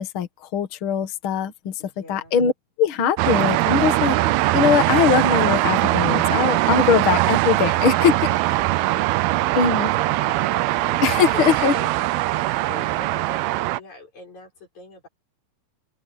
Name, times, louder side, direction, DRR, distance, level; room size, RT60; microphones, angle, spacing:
voice 1, 0.0-1.7 2.1-2.5 2.8-8.1 9.5-9.9 11.0-11.7, left 7 dB, 75° left, 1.2 m, -21 dB
voice 2, 1.8-2.3 7.3-12.1 12.4-15.1, left 3 dB, 40° left, 7.5 m, -42 dB
sound 1, 3.2-13.8, right 17 dB, 80° right, 2.4 m, -21 dB
omnidirectional pair, 5.1 m